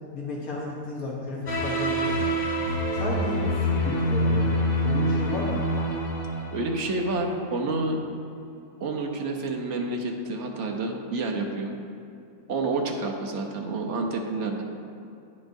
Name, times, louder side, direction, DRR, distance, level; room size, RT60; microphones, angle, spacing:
voice 1, 0.1-2.2 2.9-4.6 4.8-5.6, left 2 dB, 70° left, -4 dB, 1.5 m, -32 dB
sound 1, 1.5-7.2, equal, 50° left, 0.7 m, -26 dB
voice 2, 6.5-8.0 8.8-11.8 12.5-14.6, right 2 dB, 60° right, 1 dB, 0.9 m, -29 dB
9.9 x 5.3 x 2.6 m, 2.6 s
omnidirectional pair, 1.6 m